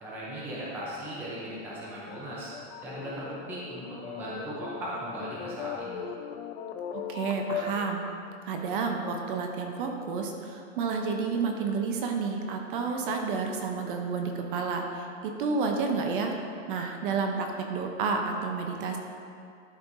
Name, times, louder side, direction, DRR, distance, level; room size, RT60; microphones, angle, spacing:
voice 1, 0.0-2.5 2.8-6.0, right 1 dB, 5° right, -7 dB, 0.5 m, -38 dB
sound 1, 1.1-8.3, left 7 dB, 60° left, 0.6 m, -39 dB
voice 2, 6.9-8.0 8.4-16.3 16.7-19.0, right 4 dB, 45° right, 3 dB, 0.7 m, -30 dB
12.0 x 4.4 x 2.6 m, 2.4 s
supercardioid pair, 165°, 38 cm